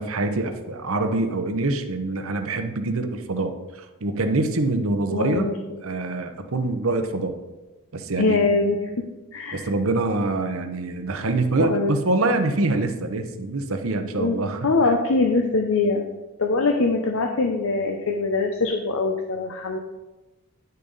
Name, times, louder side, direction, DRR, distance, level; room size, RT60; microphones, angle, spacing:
voice 1, 0.0-5.5 5.8-7.3 7.9-8.4 9.5-14.7, right 2 dB, 65° right, 7 dB, 0.9 m, -25 dB
voice 2, 5.1-5.6 8.1-8.9 9.3-9.7 11.6-11.9 14.1-14.4 14.6-16.0 16.4-19.8, left 3 dB, 65° left, 2 dB, 0.7 m, -23 dB
10.5 x 6.7 x 4.0 m, 1.1 s
head